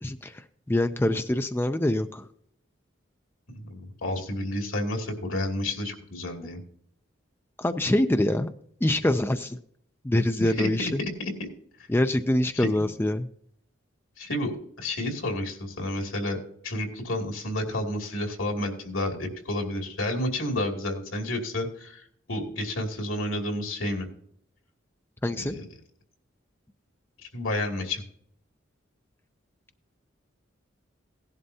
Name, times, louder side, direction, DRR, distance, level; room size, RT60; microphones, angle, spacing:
voice 1, 0.0-2.3 7.6-8.5 8.8-9.6 10.0-11.0 11.9-13.3 25.2-25.5, left 1 dB, 10° left, 8 dB, 0.4 m, -25 dB
voice 2, 3.5-6.6 10.4-11.5 12.5-12.7 14.2-16.4 16.6-24.1 25.4-25.7 27.3-28.0, left 1 dB, 90° left, 3 dB, 2.5 m, -30 dB
17.0 x 11.0 x 2.8 m, 0.67 s
head